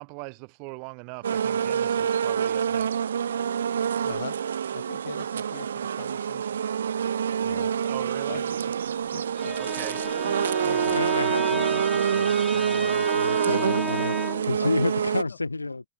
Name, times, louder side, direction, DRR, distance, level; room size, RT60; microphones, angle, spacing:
voice 1, 0.0-3.0 7.8-8.4 9.6-10.0, right 40 dB or more, 40° right, 1.0 m, -39 dB
sound 1, 1.2-15.2, right 8 dB, 65° right, 1.1 m, -26 dB
voice 2, 4.0-4.4 4.7-6.6 7.4-7.7 8.3-8.7 9.1-9.6 10.2-10.3 10.6-11.0 13.4-14.1 14.6-15.4, left 9 dB, 65° left, 7.0 m, -41 dB
Bowed string instrument, 9.2-14.6, right 1 dB, ahead, 0.3 m, -34 dB
voice 3, 10.9-14.1 14.4-15.9, left 3 dB, 80° left, 1.5 m, -31 dB
figure-of-eight pair, 100°, 0 cm